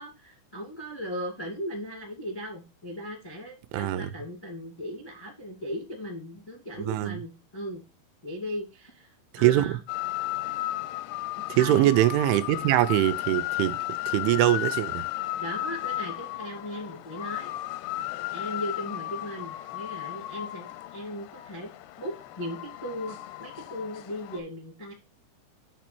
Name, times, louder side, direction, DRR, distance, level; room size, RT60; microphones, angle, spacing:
voice 1, 0.0-7.8 8.2-9.1 9.3-9.8 11.5-11.9 15.4-17.5 18.3-21.7 22.0-24.9, equal, 35° left, 0.4 m, -37 dB
voice 2, 3.7-4.1 6.9-7.2 9.4-9.8 11.5-13.8 14.1-15.0, right 14 dB, 85° right, 3.0 m, -23 dB
sound 1, 9.9-24.4, left 16 dB, 85° left, 2.4 m, -34 dB
9.1 x 3.1 x 6.0 m
omnidirectional pair, 5.4 m